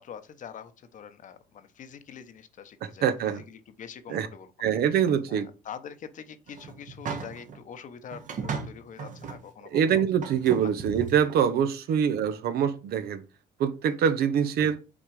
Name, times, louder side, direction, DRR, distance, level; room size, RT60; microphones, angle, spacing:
voice 1, 0.0-4.5 5.3-10.0 10.6-10.7, left 7 dB, 50° left, 0.9 m, -44 dB
voice 2, 2.8-3.4 4.1-4.3 4.6-5.5 9.7-13.2 13.6-14.8, right 8 dB, 70° right, 0.9 m, -24 dB
sound 1, 6.5-7.6 8.1-9.4 9.8-9.9 10.2-11.4, right 5 dB, 50° right, 1.2 m, -36 dB
6.2 x 3.9 x 4.8 m
cardioid pair, 110°, 17 cm